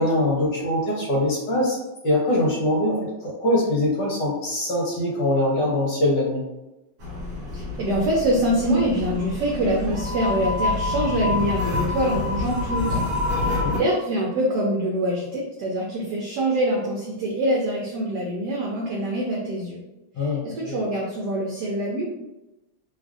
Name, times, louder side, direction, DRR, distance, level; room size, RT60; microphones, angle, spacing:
voice 1, 0.0-1.8 2.0-6.4 13.6-13.8 20.1-20.8, left 1 dB, 70° left, -3 dB, 1.4 m, -23 dB
sound 1, 7.0-13.8, left 3 dB, 55° right, 1.3 m, -27 dB
voice 2, 7.5-13.0 13.3-19.8 20.2-22.1, right 1 dB, 75° right, -2 dB, 1.0 m, -25 dB
3.2 x 2.4 x 2.4 m, 0.98 s
omnidirectional pair, 2.2 m